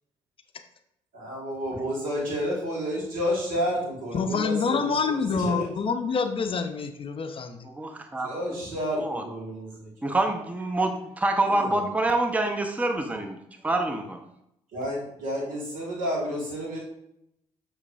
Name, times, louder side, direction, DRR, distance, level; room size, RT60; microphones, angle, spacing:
voice 1, 1.1-5.6 8.2-9.9 11.4-11.8 14.7-16.8, equal, 70° right, -3 dB, 1.6 m, -30 dB
voice 2, 4.1-7.6, left 5 dB, 40° left, 8 dB, 0.5 m, -27 dB
voice 3, 7.8-8.3 9.0-9.2 10.0-13.4 13.6-14.2, right 2 dB, 10° right, 4 dB, 0.6 m, -26 dB
6.6 x 3.1 x 2.5 m, 0.79 s
hypercardioid pair, 50°, 14 cm